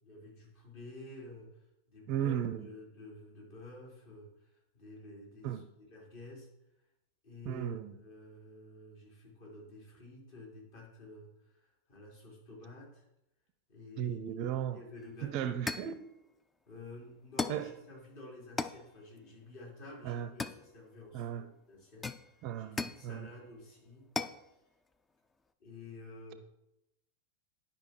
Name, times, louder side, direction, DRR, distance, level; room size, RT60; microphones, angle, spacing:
voice 1, 0.0-1.6 1.9-6.5 7.2-13.0 13.7-14.4 14.7-15.6 16.7-24.0 25.6-26.4, left 2 dB, 50° left, 3.6 m, -51 dB
voice 2, 2.1-2.7 5.4-5.6 7.4-7.9 14.0-14.8 15.2-16.1 17.5-17.7 20.0-20.3 21.1-21.5 22.4-23.3, right 10 dB, 40° right, 0.5 m, -35 dB
sound 1, 15.0-15.1 15.7-16.0 17.4-17.7 18.6-18.9 20.4-21.0 22.0-23.1 24.2-24.4, left 3 dB, 15° left, 0.4 m, -37 dB
10.5 x 5.3 x 4.5 m
figure-of-eight pair, 90°, 0 cm